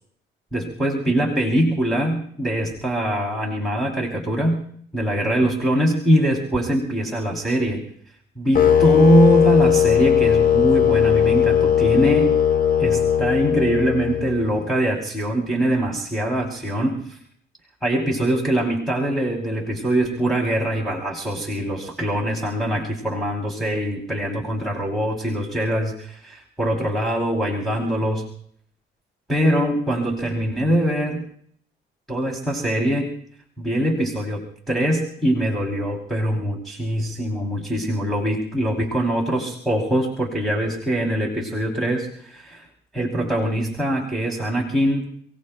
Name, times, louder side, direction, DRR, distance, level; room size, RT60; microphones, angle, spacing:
voice 1, 0.5-4.6 4.9-7.8 8.4-12.3 12.8-17.2 17.8-28.2 29.3-31.2 32.1-33.1 33.6-42.6 42.9-45.1, right 1 dB, ahead, -3 dB, 3.1 m, -22 dB
sound 1, 8.5-14.6, left 9 dB, 45° left, 1.1 m, -18 dB
29.5 x 17.5 x 2.2 m, 0.64 s
cardioid pair, 90°, 20 cm